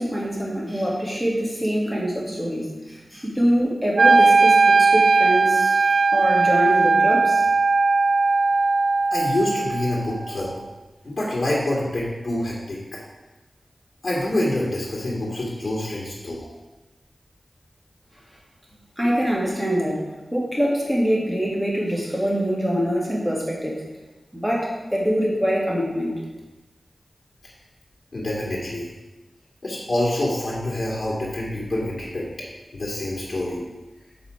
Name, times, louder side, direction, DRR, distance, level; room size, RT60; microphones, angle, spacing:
voice 1, 0.0-5.8 6.1-7.4 19.0-23.8 24.3-26.1, equal, 5° right, -4 dB, 2.3 m, -24 dB
Wind instrument woodwind instrument, 4.0-10.0, right 3 dB, 75° right, 0.3 m, -18 dB
voice 2, 9.1-10.5 11.0-12.8 14.0-16.5 28.1-28.9 29.6-32.3 32.7-33.6, left 1 dB, 55° left, -5 dB, 2.1 m, -26 dB
6.9 x 5.2 x 5.1 m, 1.1 s
wide cardioid pair, 65°, 0 cm